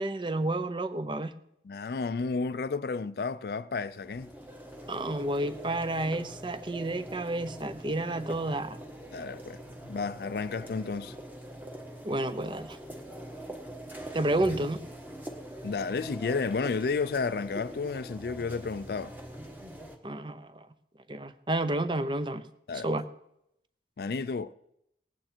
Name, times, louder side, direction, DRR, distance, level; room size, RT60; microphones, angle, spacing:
voice 1, 0.0-1.3 4.9-8.8 12.0-12.8 14.1-14.8 20.0-20.7 21.1-22.4 22.8-23.0, right 1 dB, 25° right, 0.6 m, -30 dB
voice 2, 1.6-4.3 9.1-11.2 15.6-19.1 22.7-22.9 24.0-24.5, left 4 dB, 60° left, 0.4 m, -32 dB
sound 1, 3.9-20.0, right 1 dB, 10° right, 1.3 m, -44 dB
18.5 x 8.9 x 4.4 m
head